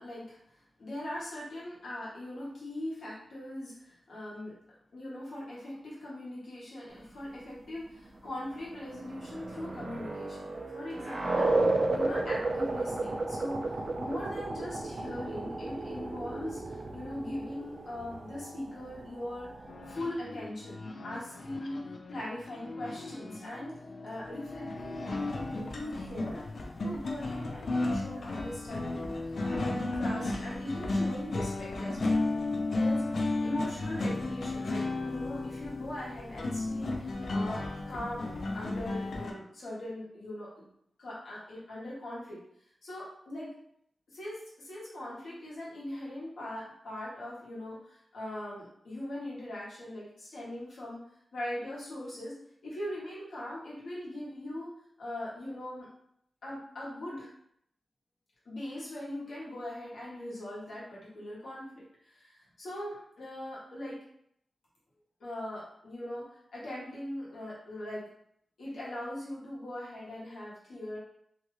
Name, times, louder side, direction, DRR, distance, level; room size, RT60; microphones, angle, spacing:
voice 1, 0.0-4.5 4.9-19.5 19.9-21.8 22.1-26.4 26.8-32.2 32.7-40.7 41.0-42.4 42.8-43.5 44.1-51.0 51.3-54.7 55.0-55.9 56.4-57.3 58.4-64.0 65.2-66.2 66.5-68.0 68.6-71.0, left 1 dB, 80° left, -7 dB, 1.2 m, -40 dB
sound 1, 8.6-20.1, right 2 dB, 50° right, 0.4 m, -33 dB
sound 2, 19.7-39.3, left 2 dB, 60° left, 0.4 m, -34 dB
2.8 x 2.3 x 3.1 m, 0.70 s
wide cardioid pair, 125°, 0 cm